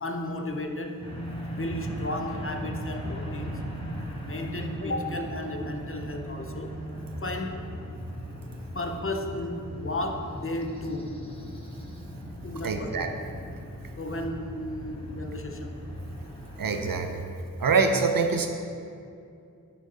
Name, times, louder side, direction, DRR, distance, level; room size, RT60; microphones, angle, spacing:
voice 1, 0.0-1.0 1.6-3.7 4.2-6.8 7.2-7.7 8.7-11.2 12.4-13.1 14.0-15.8, left 1 dB, 40° left, 4 dB, 0.8 m, -34 dB
sound 1, 1.0-17.0, equal, 15° left, 1.6 m, -38 dB
voice 2, 12.6-13.1 16.6-17.2 17.6-18.5, right 4 dB, 75° right, 5 dB, 0.7 m, -25 dB
8.8 x 6.7 x 3.9 m, 2.4 s
wide cardioid pair, 75°, 34 cm